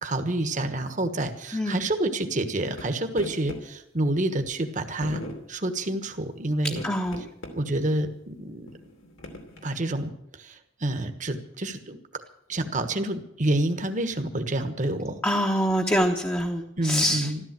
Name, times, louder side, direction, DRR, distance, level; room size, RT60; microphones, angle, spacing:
voice 1, 0.0-5.2 5.5-6.8 7.5-8.7 9.6-12.0 12.5-15.2 16.8-17.4, right 1 dB, 40° right, 7 dB, 1.3 m, -28 dB
sound 1, 2.8-2.9 3.1-3.6 4.5-4.6 5.0-5.4 6.7-7.5 8.0-8.1 8.7-9.7, left 1 dB, 90° left, 2.8 m, -38 dB
voice 2, 6.8-7.2 15.2-17.3, equal, 10° left, 0 dB, 1.0 m, -25 dB
13.5 x 13.0 x 7.6 m, 0.79 s
head